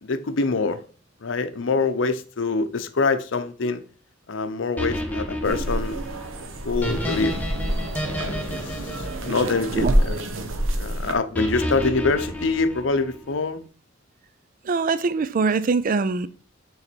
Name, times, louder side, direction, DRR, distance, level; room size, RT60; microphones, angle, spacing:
voice 1, 0.0-0.8 1.2-3.8 4.3-6.0 6.6-7.3 8.2-8.4 8.7-10.2 10.7-13.6, left 3 dB, 70° left, 0.7 m, -25 dB
sound 1, 4.8-10.1 11.3-13.3, equal, 10° left, 1.3 m, -31 dB
sound 2, 5.4-11.1, right 1 dB, 85° right, 1.0 m, -27 dB
voice 2, 14.7-16.3, right 4 dB, 45° right, 0.4 m, -22 dB
6.9 x 4.0 x 4.4 m
head